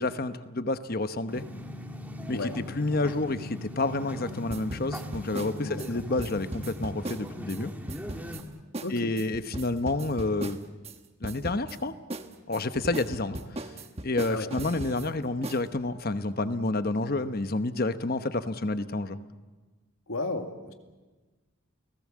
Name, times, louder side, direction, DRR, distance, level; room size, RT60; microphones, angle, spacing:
voice 1, 0.0-1.4 2.3-2.5 2.8-7.7 8.9-10.6 11.2-11.9 12.5-13.4 14.0-19.2, left 2 dB, 45° left, 11 dB, 1.0 m, -29 dB
sound 1, 1.3-8.4, left 1 dB, 10° right, 1.7 m, -39 dB
sound 2, 4.5-7.6 7.9-8.4 8.7-8.9 9.2-11.0 11.2-11.8 12.1-15.1 15.4-15.6, right 2 dB, 30° right, 1.2 m, -38 dB
voice 2, 8.8-9.1 14.3-14.5 20.1-20.7, left 2 dB, 85° left, 5 dB, 2.2 m, -33 dB
30.0 x 18.5 x 7.5 m, 1.3 s
head